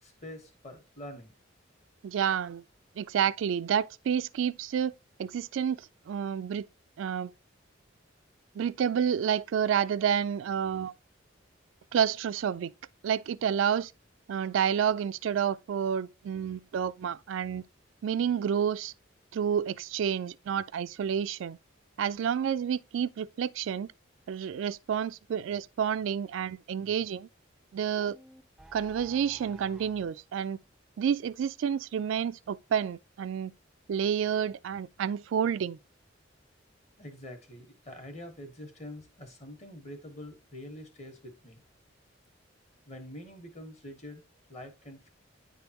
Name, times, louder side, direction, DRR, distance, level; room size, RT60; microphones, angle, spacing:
voice 1, 0.0-1.3 37.0-41.6 42.9-44.2 44.5-45.1, left 1 dB, 35° left, 1.5 m, -45 dB
voice 2, 2.0-2.6 3.0-4.9 5.2-6.7 7.0-7.3 8.6-10.9 11.9-12.7 13.0-13.9 14.3-17.6 18.0-18.9 19.3-21.6 22.0-23.9 24.3-27.3 27.7-28.2 28.7-30.6 31.0-33.5 33.9-35.8, right 8 dB, 80° right, 0.3 m, -29 dB
sound 1, 28.0-30.1, right 1 dB, ahead, 0.3 m, -52 dB
9.7 x 3.5 x 2.9 m
head